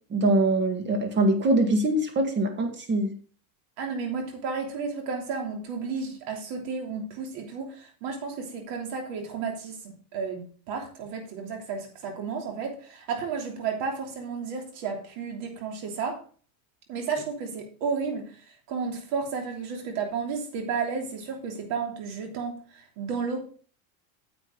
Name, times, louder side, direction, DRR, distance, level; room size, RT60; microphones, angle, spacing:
voice 1, 0.1-3.1, right 2 dB, 25° right, 6 dB, 1.8 m, -23 dB
voice 2, 3.8-16.2 16.9-23.4, right 5 dB, 60° right, 3 dB, 3.2 m, -32 dB
9.5 x 8.1 x 3.8 m, 0.40 s
supercardioid pair, 140°, 41 cm